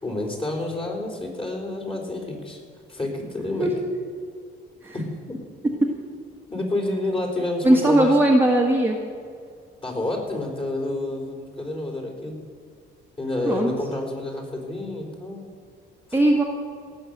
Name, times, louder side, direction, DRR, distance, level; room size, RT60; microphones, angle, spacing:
voice 1, 0.0-2.6 2.9-3.7 4.9-5.4 6.5-8.1 9.8-12.4 13.2-15.4 16.1-16.2, left 2 dB, 25° left, 1 dB, 4.1 m, -29 dB
voice 2, 7.6-9.0 13.4-13.7 16.1-16.4, right 1 dB, 10° right, -1 dB, 1.5 m, -18 dB
18.0 x 7.3 x 6.7 m, 2.2 s
cardioid pair, 90°, 20 cm